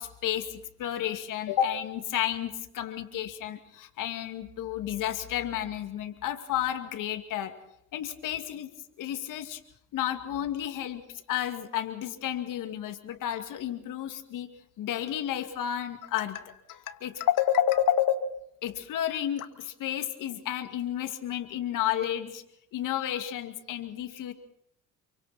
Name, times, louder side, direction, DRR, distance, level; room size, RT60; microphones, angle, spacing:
voice 1, 0.0-7.5 7.9-8.7 9.0-9.6 9.9-11.0 11.3-14.5 14.8-18.2 18.6-22.4 22.7-24.3, left 11 dB, 65° left, 8 dB, 2.4 m, -31 dB
28.5 x 24.0 x 4.3 m, 0.74 s
cardioid pair, 100°, 34 cm